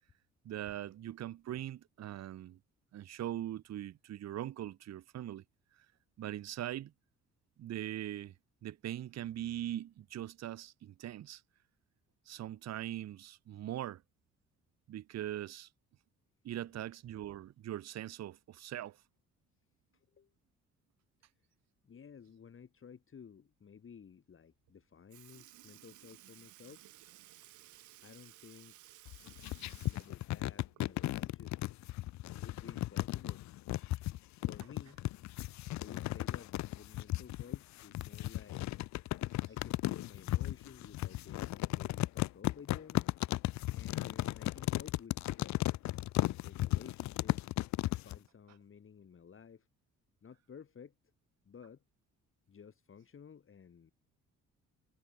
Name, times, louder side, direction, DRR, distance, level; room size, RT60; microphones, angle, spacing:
voice 1, 0.4-2.6 2.9-5.4 5.7-5.9 6.2-6.9 7.6-8.3 8.6-11.4 12.3-14.0 14.9-15.7 16.4-19.0, right 12 dB, 60° right, 0.9 m, -41 dB
voice 2, 19.9-20.3 21.8-26.8 28.0-28.9 29.8-31.6 32.2-33.4 34.4-35.0 35.8-38.7 39.5-43.1 43.7-45.7 46.2-47.5 48.0-49.7 50.2-51.0 51.4-51.8 52.5-53.9, left 7 dB, 45° left, 2.9 m, -54 dB
Sink (filling or washing) / Liquid, 24.7-24.8 25.1-31.2 31.6-31.7 33.2-33.3 34.2-34.3 35.1-35.4 36.2-36.3, right 15 dB, 80° right, 1.2 m, -58 dB
sound 1, 29.1-48.2, left 16 dB, 65° left, 0.5 m, -35 dB
cardioid pair, 90°, 30 cm